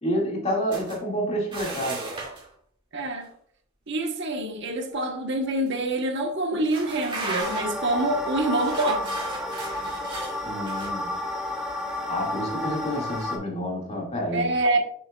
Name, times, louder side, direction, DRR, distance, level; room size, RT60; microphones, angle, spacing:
voice 1, 0.0-2.0 10.4-11.1 12.1-14.5, equal, 30° left, 2.1 m, -29 dB
sound 1, 0.7-1.0 1.5-2.5 5.0-5.2 5.7-5.8 6.6-7.8 8.5-10.9, right 3 dB, 25° right, 2.2 m, -35 dB
voice 2, 2.9-3.3 3.9-9.1 14.3-14.8, right 1 dB, 60° right, 1.1 m, -26 dB
sound 2, 7.4-13.4, left 1 dB, ahead, 1.5 m, -31 dB
7.4 x 6.4 x 2.3 m
head